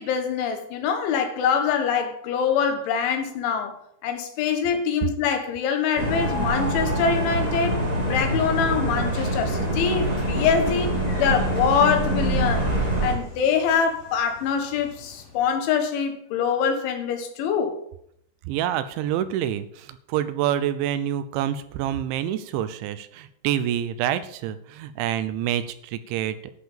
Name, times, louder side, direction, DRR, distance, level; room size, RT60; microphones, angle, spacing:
voice 1, 0.0-7.8 8.1-12.7 13.0-17.8, left 6 dB, 85° left, 3.9 m, -24 dB
sound 1, 6.0-13.1, right 1 dB, 20° right, 1.1 m, -25 dB
Train / Sliding door, 8.9-15.5, left 3 dB, 50° left, 5.1 m, -44 dB
voice 2, 18.5-26.4, right 11 dB, 80° right, 3.1 m, -27 dB
11.5 x 6.7 x 7.1 m
omnidirectional pair, 5.3 m